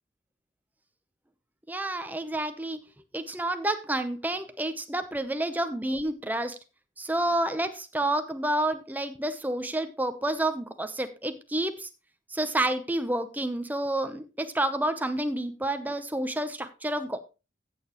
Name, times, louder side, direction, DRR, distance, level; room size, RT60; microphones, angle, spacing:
voice 1, 1.7-2.8 3.1-6.6 7.0-11.9 12.3-17.2, right 1 dB, 10° right, 9 dB, 0.7 m, -29 dB
15.0 x 6.8 x 3.0 m, 0.29 s
head